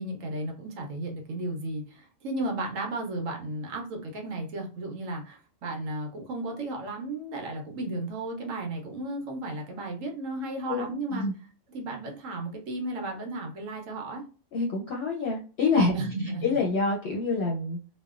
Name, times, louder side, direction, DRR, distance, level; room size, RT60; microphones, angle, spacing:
voice 1, 0.0-11.3 11.7-14.2 15.9-16.5, right 2 dB, 70° right, 2 dB, 1.1 m, -34 dB
voice 2, 10.7-11.3 14.5-15.9 16.4-17.8, left 3 dB, 60° left, -1 dB, 0.7 m, -26 dB
3.1 x 2.1 x 2.4 m, 0.36 s
omnidirectional pair, 1.4 m